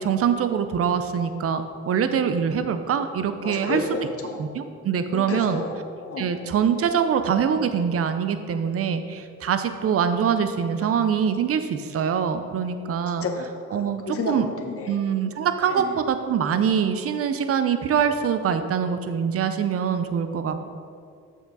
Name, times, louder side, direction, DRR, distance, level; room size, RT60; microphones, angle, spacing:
voice 1, 0.0-3.8 4.4-5.6 6.2-13.3 13.7-14.5 14.9-20.7, right 7 dB, 50° right, 9 dB, 0.7 m, -24 dB
voice 2, 3.4-4.4 5.1-6.3 13.2-15.0 15.7-15.9 20.6-20.7, left 3 dB, 50° left, 3 dB, 1.1 m, -31 dB
7.4 x 6.6 x 4.0 m, 2.2 s
cardioid pair, 90°, 30 cm